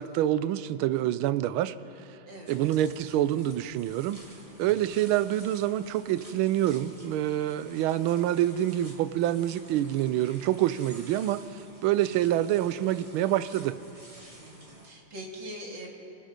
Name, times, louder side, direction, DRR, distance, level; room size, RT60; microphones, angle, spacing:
voice 1, 0.0-1.7 2.5-4.2 4.6-13.8, right 12 dB, 80° right, 15 dB, 1.5 m, -27 dB
voice 2, 2.2-2.6 14.3-15.9, equal, 60° right, -1 dB, 3.4 m, -42 dB
sound 1, 2.5-14.9, right 1 dB, 15° right, 2.1 m, -50 dB
28.5 x 17.5 x 5.2 m, 2.7 s
omnidirectional pair, 2.3 m